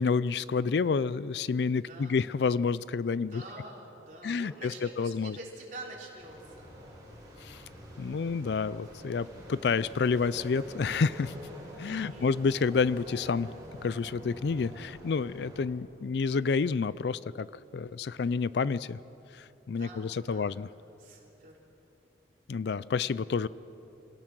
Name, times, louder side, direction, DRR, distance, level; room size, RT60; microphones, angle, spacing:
voice 1, 0.0-3.4 4.2-4.7 5.0-5.4 7.4-7.6 8.0-11.3 11.8-13.5 13.8-17.5 17.7-19.0 19.3-20.7 22.5-23.5, left 5 dB, 70° left, 18 dB, 0.4 m, -29 dB
voice 2, 1.7-2.3 3.1-6.7 11.8-12.4 19.7-20.6 21.0-21.5, right 2 dB, 45° right, -2 dB, 3.7 m, -47 dB
sound 1, 6.2-15.6, equal, 20° right, 5.8 m, -47 dB
26.5 x 18.0 x 6.2 m, 3.0 s
head